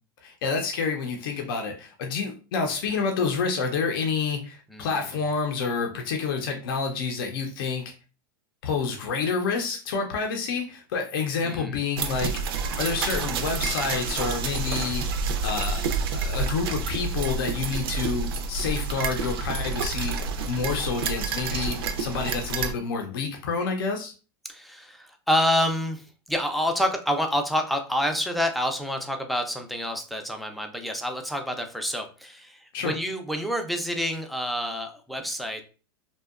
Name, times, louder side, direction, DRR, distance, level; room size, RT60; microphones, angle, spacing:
voice 1, 0.2-7.9 8.6-15.0 15.4-15.8 16.1-24.1 32.7-32.9, left 5 dB, 75° left, 3 dB, 0.5 m, -28 dB
voice 2, 4.7-5.1 11.4-11.8 24.4-35.6, equal, ahead, 4 dB, 0.3 m, -28 dB
sound 1, 12.0-22.7, right 4 dB, 85° right, 0.4 m, -29 dB
2.7 x 2.2 x 2.3 m, 0.35 s
supercardioid pair, 135°, 12 cm